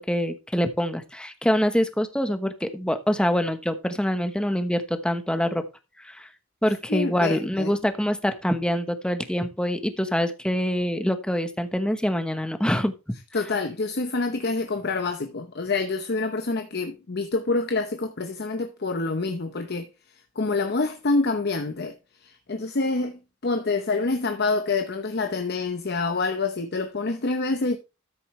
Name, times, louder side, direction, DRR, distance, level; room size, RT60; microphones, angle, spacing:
voice 1, 0.1-5.6 6.0-6.3 6.6-12.9, equal, 5° left, 1.0 m, -25 dB
voice 2, 6.9-7.7 13.3-19.9 20.4-21.9 22.2-27.8, left 3 dB, 55° left, 0.8 m, -27 dB
13.5 x 6.7 x 3.2 m
head